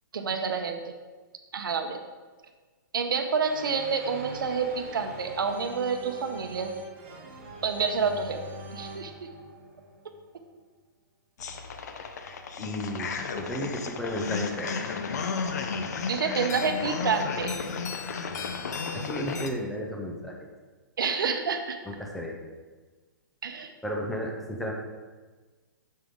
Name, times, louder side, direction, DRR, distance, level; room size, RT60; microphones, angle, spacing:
voice 1, 0.1-0.9 1.5-2.0 2.9-6.7 7.6-8.4 8.7-9.3 16.1-17.5 21.0-21.8 23.4-23.7, right 5 dB, 75° right, 6 dB, 0.9 m, -28 dB
sound 1, 3.4-10.4, right 2 dB, 35° right, 1.5 m, -43 dB
sound 2, 11.4-19.5, left 5 dB, 50° left, 0.7 m, -33 dB
voice 2, 12.6-13.1 13.4-14.8 18.9-20.4 21.8-22.4 23.8-24.7, equal, ahead, 0 dB, 0.5 m, -33 dB
7.1 x 6.6 x 3.6 m, 1.3 s
hypercardioid pair, 170°, 11 cm